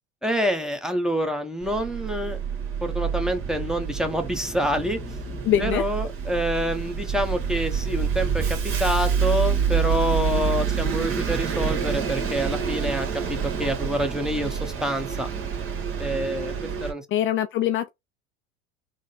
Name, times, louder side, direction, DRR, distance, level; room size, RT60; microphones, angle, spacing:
voice 1, 0.2-2.4 2.8-5.0 5.6-13.1 13.6-15.3 16.0-17.0, equal, ahead, 0.9 m, -27 dB
Bus, 1.6-16.9, right 7 dB, 40° right, 1.3 m, -27 dB
voice 2, 5.4-5.9 17.1-17.9, left 11 dB, 40° left, 0.4 m, -23 dB
3.8 x 2.1 x 3.9 m
hypercardioid pair, 85°, 32 cm